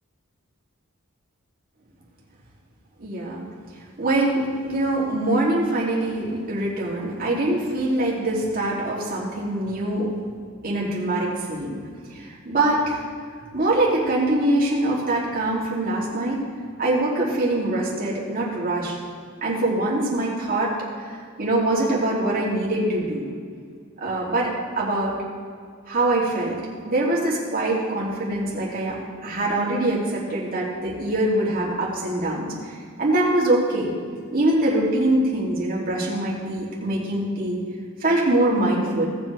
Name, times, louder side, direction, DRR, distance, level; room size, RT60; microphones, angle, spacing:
voice 1, 3.0-3.4 4.0-10.1 10.6-11.8 12.1-13.0 13.5-16.4 16.8-19.0 19.4-20.7 21.4-23.3 24.0-25.1 25.9-26.6 26.9-32.5 33.0-33.9 34.3-37.6 38.0-39.1, right 1 dB, 45° right, -5 dB, 3.0 m, -23 dB
17.5 x 7.8 x 3.5 m, 2.1 s
head